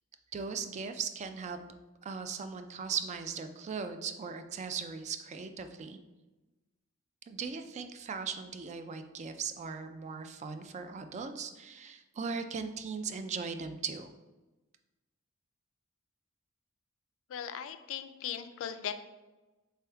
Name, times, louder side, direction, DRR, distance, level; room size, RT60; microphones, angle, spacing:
voice 1, 0.3-1.6 2.0-6.0 7.3-14.1, right 5 dB, 35° right, 8 dB, 0.3 m, -38 dB
voice 2, 17.3-18.9, left 9 dB, 65° left, 10 dB, 0.3 m, -38 dB
3.4 x 3.4 x 4.4 m, 1.1 s
head